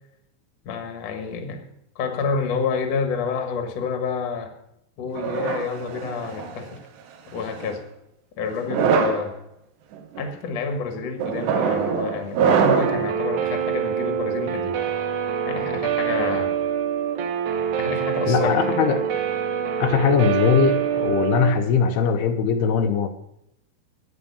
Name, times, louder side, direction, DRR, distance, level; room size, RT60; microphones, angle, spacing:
voice 1, 0.6-1.6 2.0-4.5 5.0-6.8 7.3-7.8 8.4-9.3 10.2-14.8 15.5-16.5 17.8-18.5, left 5 dB, 50° left, 5 dB, 2.2 m, -28 dB
sound 1, 5.2-6.6 7.4-7.8 8.6-9.3 9.9-10.2 11.2-13.1, right 6 dB, 85° right, 3.4 m, -23 dB
Guitar, 12.8-21.5, right 8 dB, 60° right, 2.2 m, -25 dB
voice 2, 18.3-19.0 19.8-23.1, left 6 dB, 80° left, 6 dB, 2.7 m, -20 dB
10.5 x 9.4 x 7.0 m, 0.80 s
omnidirectional pair, 4.7 m